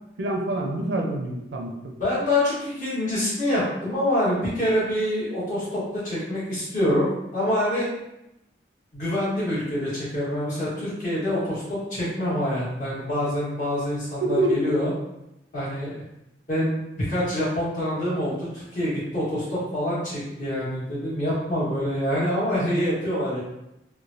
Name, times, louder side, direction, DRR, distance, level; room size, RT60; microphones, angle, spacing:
voice 1, 0.2-2.0 14.2-14.5, right 2 dB, 75° right, 1 dB, 0.5 m, -26 dB
voice 2, 2.0-7.9 8.9-14.9 15.5-16.0 16.5-23.4, left 1 dB, 45° left, -9 dB, 1.4 m, -26 dB
3.0 x 2.2 x 2.6 m, 0.88 s
head